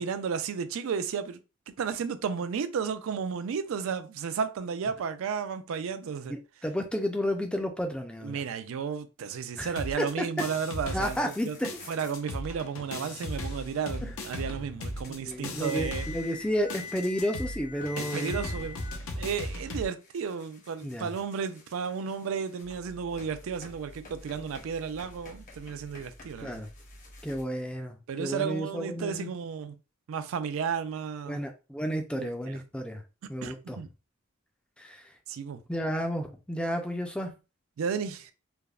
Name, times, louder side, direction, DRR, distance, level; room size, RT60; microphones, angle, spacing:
voice 1, 0.0-1.4 1.8-6.4 8.2-11.6 11.9-16.1 18.0-18.8 19.1-26.6 28.1-29.7 30.1-31.4 32.2-32.6 33.4-33.9 35.3-35.6 37.8-38.3, right 6 dB, 75° right, 0.3 m, -33 dB
voice 2, 6.3-8.4 9.6-9.7 10.0-10.5 10.9-11.7 14.0-14.1 15.2-18.4 20.8-21.1 26.4-26.7 27.2-29.3 31.3-33.0 33.3-33.8 34.8-35.0 35.7-37.3, equal, 5° left, 0.3 m, -32 dB
sound 1, 9.8-11.4 11.6-19.9, left 1 dB, 80° left, 0.6 m, -37 dB
sound 2, 11.0-12.2 13.4-27.4, left 4 dB, 35° left, 0.7 m, -47 dB
3.3 x 2.0 x 2.3 m
head